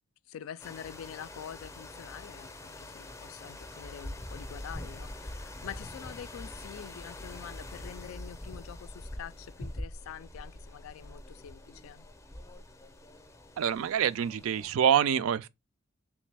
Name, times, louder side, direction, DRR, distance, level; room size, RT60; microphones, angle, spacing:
voice 1, 0.3-12.1, left 9 dB, 75° left, 0.3 m, -46 dB
sound 1, 0.6-14.7, left 1 dB, 15° left, 0.5 m, -44 dB
voice 2, 13.6-15.5, right 8 dB, 75° right, 0.3 m, -26 dB
3.2 x 3.0 x 3.2 m
head